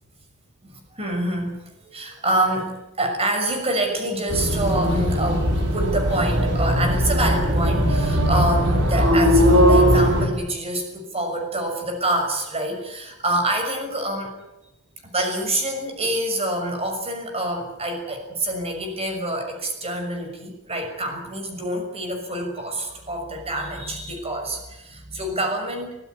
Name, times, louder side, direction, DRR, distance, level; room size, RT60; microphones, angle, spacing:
voice 1, 0.7-14.3 15.0-26.0, right 1 dB, 30° right, 4 dB, 6.3 m, -26 dB
sound 1, 4.3-10.3, equal, 55° right, 5.5 m, -19 dB
24.5 x 16.0 x 9.4 m, 0.97 s
head